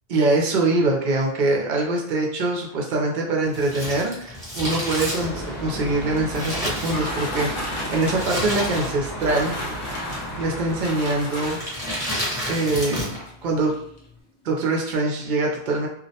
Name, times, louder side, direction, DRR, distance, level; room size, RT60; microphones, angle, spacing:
voice 1, 0.1-9.6 10.4-11.6 12.5-13.2 13.4-13.8 14.4-15.9, right 2 dB, 60° right, 0 dB, 0.6 m, -23 dB
Crumpling crinkling, 3.5-7.5 8.1-9.2 9.4-9.5 10.3-10.7 11.4-13.3 13.5-13.6, equal, 5° right, 0.8 m, -30 dB
sound 1, 5.1-11.7, equal, 80° left, 0.8 m, -34 dB
sound 2, 5.8-11.9 12.8-12.9 13.3-13.4 13.7-14.1, left 1 dB, 40° left, 0.5 m, -34 dB
2.4 x 2.0 x 2.7 m, 0.70 s
omnidirectional pair, 1.1 m